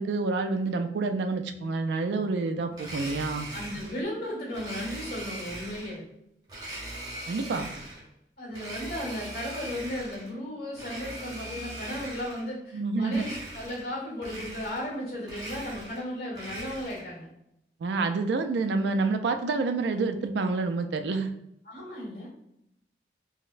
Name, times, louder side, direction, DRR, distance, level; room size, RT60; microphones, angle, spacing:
voice 1, 0.0-3.5 7.3-7.7 12.7-13.3 17.8-21.3, right 3 dB, 80° right, 7 dB, 0.3 m, -28 dB
Domestic sounds home sounds, 2.7-4.0 4.5-6.0 6.5-8.1 8.5-10.3 10.7-12.5 13.1-13.9 14.2-15.0 15.2-17.1, right 1 dB, 20° right, 0.7 m, -40 dB
voice 2, 3.5-6.0 8.4-17.3 21.6-22.3, left 1 dB, 60° left, -4 dB, 1.4 m, -35 dB
3.9 x 2.1 x 2.5 m, 0.80 s
head